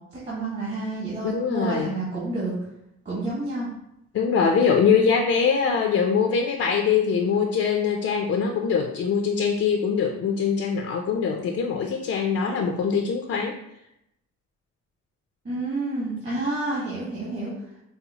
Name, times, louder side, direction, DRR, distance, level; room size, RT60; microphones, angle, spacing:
voice 1, 0.3-2.5 3.0-3.7 15.4-17.5, right 2 dB, 40° right, -8 dB, 1.4 m, -29 dB
voice 2, 1.2-1.9 4.1-13.6, left 6 dB, 50° left, 2 dB, 0.5 m, -23 dB
5.4 x 2.0 x 2.8 m, 0.81 s
cardioid pair, 90°, 30 cm